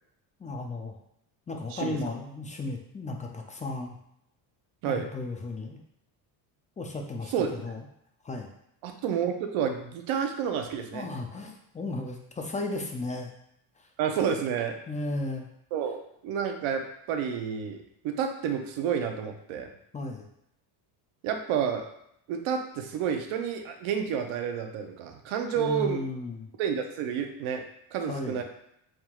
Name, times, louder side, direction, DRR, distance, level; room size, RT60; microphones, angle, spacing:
voice 1, 0.4-1.0 1.5-4.0 4.9-5.8 6.8-7.8 8.2-8.5 10.9-13.3 13.8-13.9 14.9-15.5 19.9-20.3 25.6-26.5 28.1-28.4, left 2 dB, 20° left, 3 dB, 0.3 m, -35 dB
voice 2, 8.8-11.1 14.0-14.8 15.7-16.0 16.2-19.7 21.2-21.9 22.3-26.0 26.6-27.6 27.9-28.4, right 7 dB, 75° right, 5 dB, 0.8 m, -30 dB
4.4 x 3.7 x 2.3 m, 0.76 s
cardioid pair, 115°, 48 cm